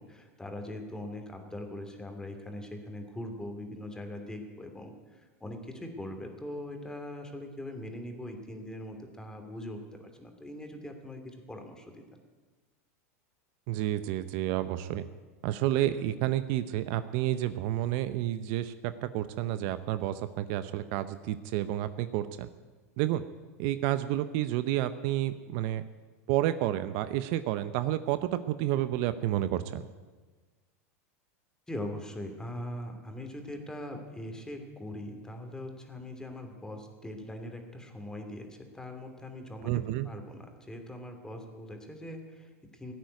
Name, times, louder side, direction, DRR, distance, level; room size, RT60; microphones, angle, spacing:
voice 1, 0.0-12.0 31.7-42.9, left 1 dB, 10° left, 4 dB, 2.8 m, -41 dB
voice 2, 13.7-15.1 15.4-22.5 23.0-23.2 23.6-25.8 26.3-29.8 39.6-40.1, right 13 dB, 60° right, 12 dB, 0.8 m, -30 dB
16.5 x 9.1 x 9.5 m, 1.4 s
hypercardioid pair, 105°, 8 cm